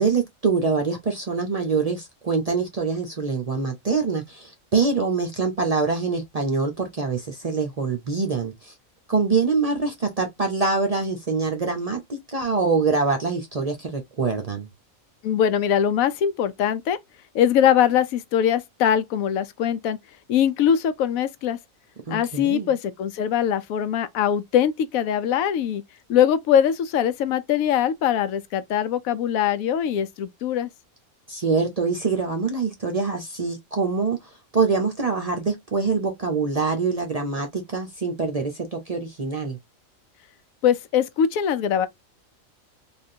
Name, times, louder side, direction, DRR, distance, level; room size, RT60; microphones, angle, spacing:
voice 1, 0.0-8.7 9.1-14.7 22.1-22.7 31.3-34.2 34.5-39.6, right 4 dB, 45° right, 0.5 m, -24 dB
voice 2, 15.2-17.0 17.3-20.0 20.3-21.6 22.1-25.8 26.1-30.7 40.6-41.9, left 9 dB, 90° left, 1.0 m, -22 dB
3.5 x 2.4 x 2.6 m
omnidirectional pair, 1.4 m